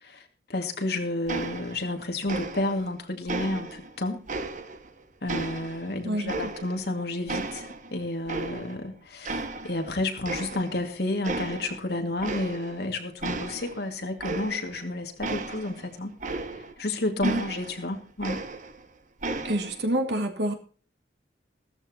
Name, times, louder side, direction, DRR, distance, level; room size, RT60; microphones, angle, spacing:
voice 1, 0.0-4.2 5.2-16.1 16.8-18.4, left 2 dB, 60° left, 4 dB, 2.4 m, -31 dB
sound 1, 1.3-2.0 2.3-2.9 3.3-4.9 5.3-6.9 7.3-8.9 9.2-9.9 10.2-10.9 11.2-11.8 12.2-12.9 13.2-16.8 17.2-18.9 19.2-19.8, right 3 dB, 45° right, 1.3 m, -35 dB
voice 2, 6.0-6.4 17.2-17.5 19.4-20.5, right 1 dB, 65° right, 4 dB, 2.7 m, -27 dB
15.5 x 14.0 x 3.0 m, 0.40 s
head